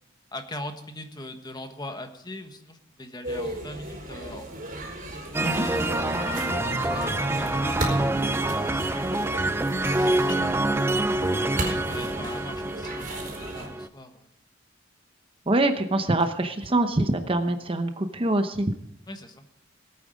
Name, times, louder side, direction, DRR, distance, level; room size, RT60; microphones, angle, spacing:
voice 1, 0.3-4.8 5.5-5.8 6.2-10.7 11.6-13.1 13.5-14.3 19.1-19.4, left 1 dB, 20° left, 6 dB, 1.3 m, -41 dB
sound 1, 3.2-13.7, right 1 dB, 45° right, 3.9 m, -36 dB
sound 2, 5.3-13.9, right 2 dB, 15° right, 0.5 m, -26 dB
voice 2, 15.5-18.7, right 2 dB, 30° right, 8 dB, 0.8 m, -24 dB
19.0 x 8.8 x 5.2 m, 0.79 s
head